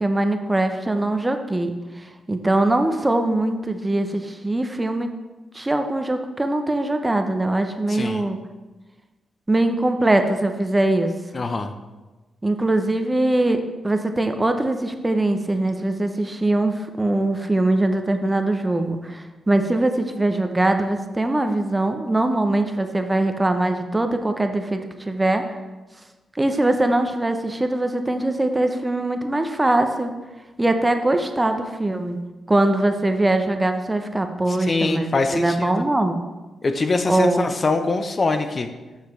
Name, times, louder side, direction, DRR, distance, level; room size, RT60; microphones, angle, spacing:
voice 1, 0.0-1.8 2.0-5.1 5.5-8.4 9.5-11.1 12.4-25.4 26.4-30.1 30.6-32.2 32.5-36.2 37.1-37.5, right 2 dB, 20° right, 7 dB, 0.8 m, -22 dB
voice 2, 7.9-8.2 11.3-11.7 34.5-35.9 36.6-38.7, left 3 dB, 45° left, 8 dB, 0.6 m, -23 dB
6.8 x 6.4 x 3.2 m, 1.2 s
supercardioid pair, 45°, 0 cm